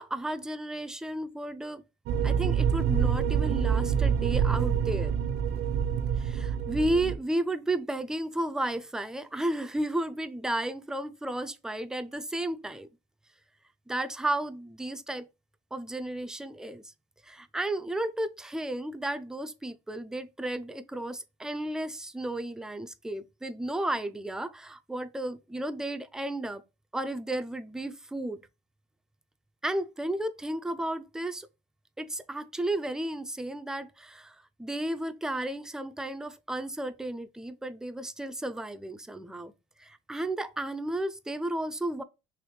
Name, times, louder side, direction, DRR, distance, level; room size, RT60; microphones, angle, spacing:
voice 1, 0.0-1.8 2.2-5.1 6.2-12.9 13.9-15.3 15.7-16.9 17.2-26.6 26.9-28.4 29.6-31.5 32.0-39.5 39.8-42.0, right 1 dB, 5° right, 0.3 m, -33 dB
sound 1, 2.1-7.2, right 7 dB, 70° right, 0.5 m, -26 dB
3.2 x 3.0 x 3.1 m
cardioid pair, 110°, 17 cm